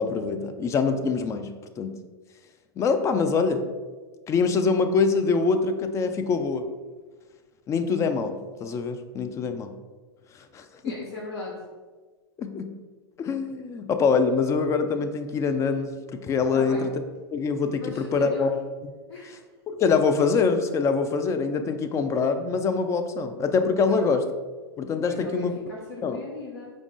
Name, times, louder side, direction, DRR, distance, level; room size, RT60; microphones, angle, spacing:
voice 1, 0.0-1.9 2.8-3.7 4.3-6.7 7.7-9.7 10.5-10.9 12.4-12.7 13.2-16.9 17.3-18.5 19.7-24.2 24.8-25.6 26.0-26.2, left 5 dB, 20° left, 8 dB, 0.3 m, -24 dB
voice 2, 10.8-11.6 16.5-16.9 17.8-18.5 19.1-19.4 23.9-24.1 25.1-26.7, left 3 dB, 85° left, -2 dB, 0.7 m, -38 dB
4.8 x 2.4 x 3.7 m, 1.4 s
hypercardioid pair, 115°, 13 cm